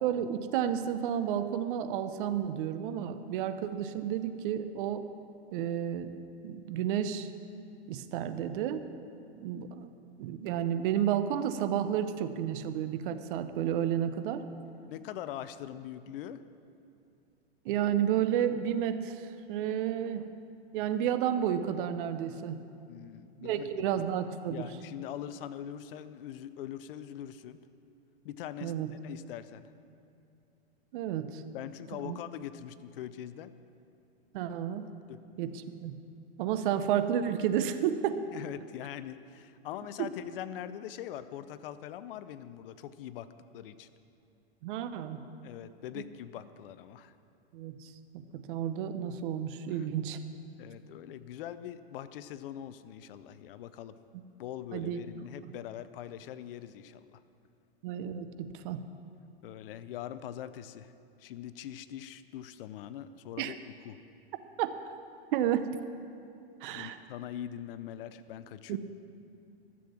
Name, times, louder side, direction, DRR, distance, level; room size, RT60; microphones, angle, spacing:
voice 1, 0.0-5.1 5.5-6.1 6.4-7.3 7.9-8.8 9.4-9.9 10.2-14.4 17.6-20.3 20.7-22.6 23.4-24.7 28.6-28.9 30.9-31.4 32.0-32.2 34.3-34.9 35.4-36.0 36.4-38.2 40.0-40.1 44.6-45.2 47.5-50.2 54.7-55.5 57.8-58.8 63.4-63.5 64.6-64.7 65.3-65.7 66.6-67.0 68.7-68.8, right 10 dB, 50° right, 10 dB, 0.8 m, -31 dB
voice 2, 14.9-16.4 22.9-23.7 24.5-27.6 28.2-29.7 31.5-33.5 35.1-35.2 38.3-43.3 43.5-43.9 45.4-47.1 49.7-49.9 50.6-54.0 54.4-57.2 59.4-60.9 61.2-64.0 66.7-68.8, left 10 dB, 55° left, 13 dB, 0.7 m, -42 dB
12.5 x 7.7 x 7.3 m, 2.6 s
hypercardioid pair, 130°, 33 cm